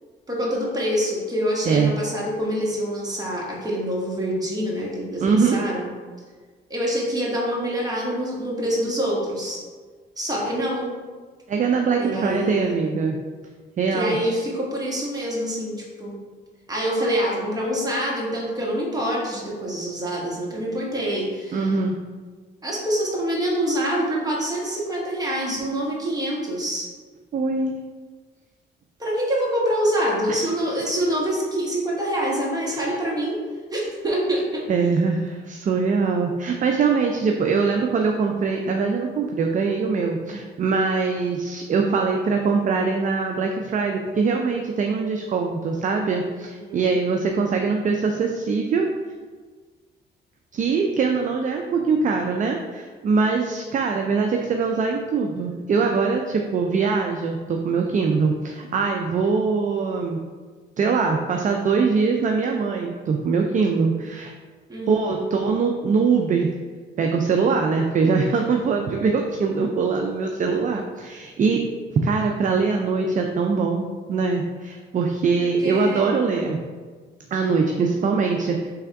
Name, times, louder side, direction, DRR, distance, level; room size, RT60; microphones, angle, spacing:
voice 1, 0.3-5.9 6.7-9.6 10.2-10.9 12.0-12.9 13.9-16.1 16.7-21.8 22.6-26.9 29.0-33.4 33.7-34.7 46.5-47.0 64.7-65.3 75.4-76.0, equal, 20° right, -4 dB, 1.4 m, -26 dB
voice 2, 5.2-5.6 11.5-13.2 13.8-14.2 21.5-22.0 27.3-27.8 30.3-30.4 32.7-33.0 34.7-48.9 50.5-60.2 60.8-64.3 64.9-66.5 67.0-71.7 71.9-76.6 77.3-78.7, right 4 dB, 40° right, 3 dB, 0.4 m, -22 dB
3.4 x 3.4 x 4.6 m, 1.5 s
cardioid pair, 90°, 20 cm